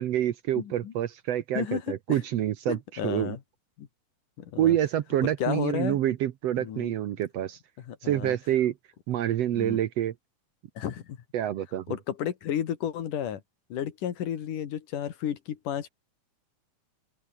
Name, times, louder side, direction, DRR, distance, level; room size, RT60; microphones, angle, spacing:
voice 1, 0.0-2.8 3.0-3.4 4.6-7.6 8.0-8.7 9.1-10.1 11.3-12.0, right 12 dB, 65° right, 1.8 m, -27 dB
voice 2, 0.6-0.9 1.6-2.2 2.7-3.4 3.8-3.9 4.4-4.8 5.2-6.0 6.6-6.9 7.9-8.4 9.5-9.8 10.8-11.2 11.9-13.4 13.7-15.9, left 9 dB, 80° left, 3.5 m, -32 dB
open air
omnidirectional pair, 3.6 m